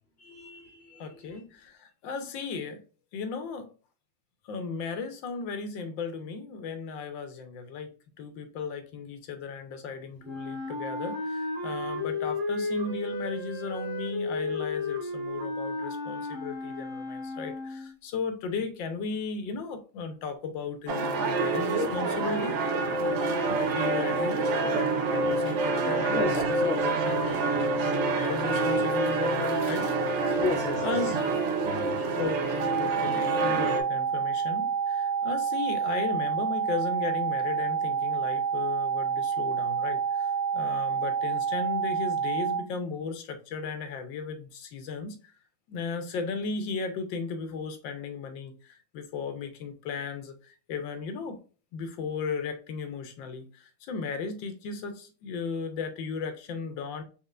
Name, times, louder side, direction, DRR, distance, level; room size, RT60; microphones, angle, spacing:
voice 1, 0.2-1.4 26.1-27.4 30.4-31.2 31.6-32.0, left 1 dB, 45° left, 0.9 m, -34 dB
voice 2, 1.0-2.8 3.1-3.7 4.4-22.6 23.6-26.2 26.8-29.9 30.3-30.4 30.8-31.1 32.2-45.2 45.7-51.4 51.7-57.0, left 5 dB, 90° left, 1.5 m, -36 dB
Wind instrument woodwind instrument, 10.2-17.9, left 2 dB, 35° right, 1.7 m, -33 dB
sound 1, 20.9-33.8, right 3 dB, 80° right, 0.6 m, -27 dB
sound 2, 32.6-42.6, right 7 dB, 65° right, 1.0 m, -28 dB
4.3 x 3.6 x 2.4 m
omnidirectional pair, 2.0 m